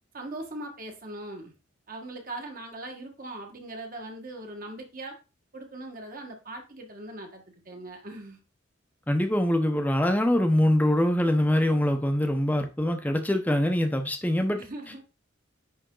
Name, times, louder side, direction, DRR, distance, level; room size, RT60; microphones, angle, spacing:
voice 1, 0.1-1.5 1.9-5.1 5.5-8.4 14.6-15.0, right 2 dB, 45° right, 1.6 m, -40 dB
voice 2, 9.1-14.6, left 1 dB, 10° left, 0.9 m, -24 dB
10.0 x 3.6 x 3.9 m
head